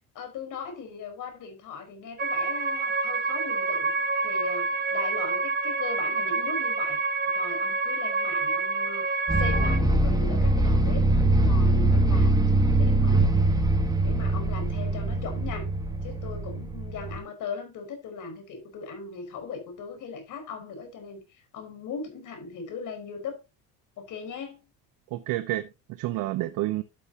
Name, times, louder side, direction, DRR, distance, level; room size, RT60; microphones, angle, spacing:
voice 1, 0.1-7.0 7.3-12.4 12.7-13.2 14.0-15.6 16.0-23.4 24.0-24.6, left 5 dB, 60° left, 4.9 m, -39 dB
sound 1, 2.2-9.8, right 3 dB, 30° right, 0.8 m, -27 dB
sound 2, 9.3-17.2, right 2 dB, 10° right, 1.4 m, -23 dB
voice 2, 25.1-26.8, right 16 dB, 70° right, 0.9 m, -29 dB
12.0 x 7.4 x 2.9 m
cardioid pair, 120°, 35 cm